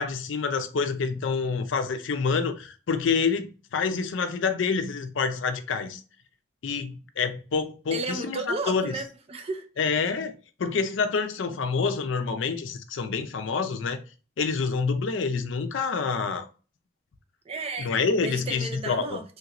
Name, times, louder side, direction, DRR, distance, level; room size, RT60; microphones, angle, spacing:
voice 1, 0.0-6.0 6.6-8.9 9.8-14.0 14.4-16.5 17.8-19.2, left 5 dB, 70° left, 0.5 m, -27 dB
voice 2, 7.9-9.7 17.5-17.9 18.2-19.2, right 3 dB, 30° right, 0.5 m, -33 dB
3.1 x 2.5 x 2.9 m
head